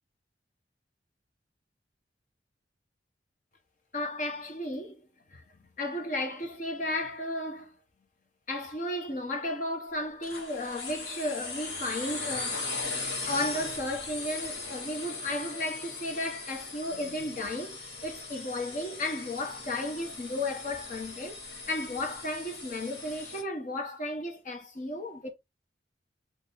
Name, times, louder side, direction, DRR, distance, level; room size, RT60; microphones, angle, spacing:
voice 1, 3.9-5.0 5.3-5.4 5.8-7.7 8.5-12.8 13.2-21.4 21.7-25.3, left 1 dB, 45° left, 1.3 m, -34 dB
sound 1, 10.2-23.4, left 3 dB, 65° left, 2.3 m, -39 dB
3.8 x 3.6 x 3.6 m
head